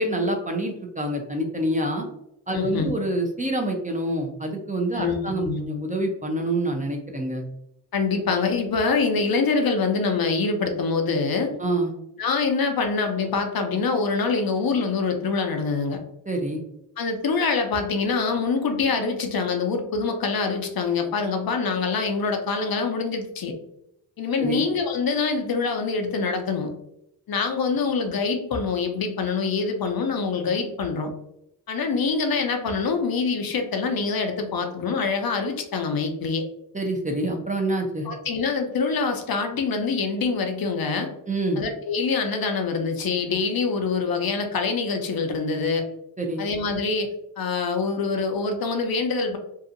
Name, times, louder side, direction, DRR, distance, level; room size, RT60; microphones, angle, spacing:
voice 1, 0.0-2.1 2.5-7.4 11.6-11.9 16.3-16.6 24.4-24.6 36.7-38.1 41.3-41.6 46.2-46.5, right 1 dB, 20° right, 1 dB, 0.5 m, -26 dB
voice 2, 2.5-2.9 4.9-5.6 7.9-11.5 12.2-16.0 17.0-23.5 24.2-26.7 27.3-31.1 31.7-36.5 38.1-41.1 41.6-45.9 46.4-47.1 47.4-49.4, left 4 dB, 60° left, 5 dB, 0.6 m, -25 dB
2.7 x 2.4 x 2.5 m, 0.78 s
cardioid pair, 55°, 42 cm